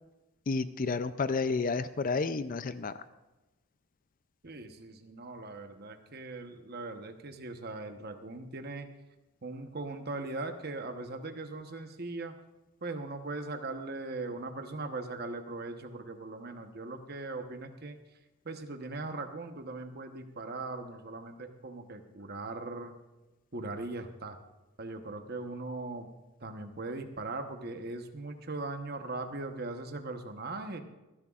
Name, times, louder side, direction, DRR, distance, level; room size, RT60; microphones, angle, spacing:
voice 1, 0.5-2.9, left 4 dB, 40° left, 12 dB, 0.4 m, -31 dB
voice 2, 4.4-8.9 9.4-12.4 12.8-18.0 18.4-22.9 23.5-24.4 24.8-26.1 26.4-30.8, right 2 dB, 45° right, 6 dB, 1.0 m, -39 dB
25.5 x 11.0 x 2.5 m, 1.1 s
head